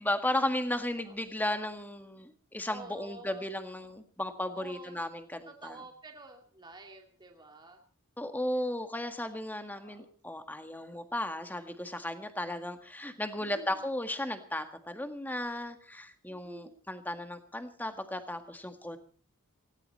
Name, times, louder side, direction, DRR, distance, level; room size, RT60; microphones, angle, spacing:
voice 1, 0.0-5.8 8.2-19.0, left 1 dB, 10° left, 8 dB, 1.7 m, -35 dB
voice 2, 2.7-3.4 4.5-5.1 5.5-7.8 9.7-10.0 13.4-13.9 16.3-16.8, right 2 dB, 20° right, 2 dB, 2.4 m, -49 dB
19.5 x 17.0 x 4.3 m, 0.41 s
head